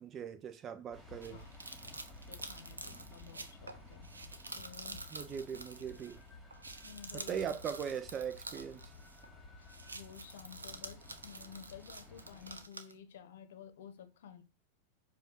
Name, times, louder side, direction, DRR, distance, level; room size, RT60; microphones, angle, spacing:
voice 1, 0.0-1.4 5.1-6.2 7.1-8.8, right 8 dB, 30° right, 0.8 m, -40 dB
sound 1, 0.9-12.7, left 2 dB, ahead, 2.1 m, -54 dB
sound 2, 1.2-6.2 6.5-9.3 9.6-12.9, right 3 dB, 75° right, 0.6 m, -48 dB
voice 2, 2.3-4.1 4.5-5.0 5.5-5.6 6.8-7.6 9.6-14.4, left 8 dB, 60° left, 0.9 m, -53 dB
7.2 x 2.6 x 5.5 m
figure-of-eight pair, 90°, 0 cm